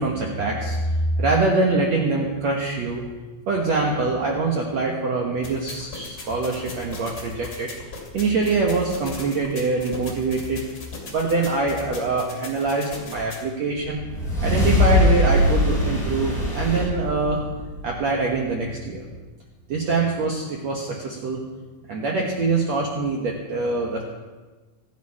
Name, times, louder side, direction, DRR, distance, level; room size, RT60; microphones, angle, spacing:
voice 1, 0.0-3.0 3.5-7.7 8.1-10.6 11.1-14.0 14.4-17.4 17.8-19.1 19.7-21.4 21.9-24.0, right 3 dB, 55° right, -1 dB, 2.3 m, -24 dB
sound 1, 5.4-13.4, left 3 dB, 30° left, 2.9 m, -38 dB
sound 2, 13.8-18.4, left 1 dB, 15° left, 6.5 m, -22 dB
25.5 x 8.8 x 4.8 m, 1.3 s
omnidirectional pair, 4.2 m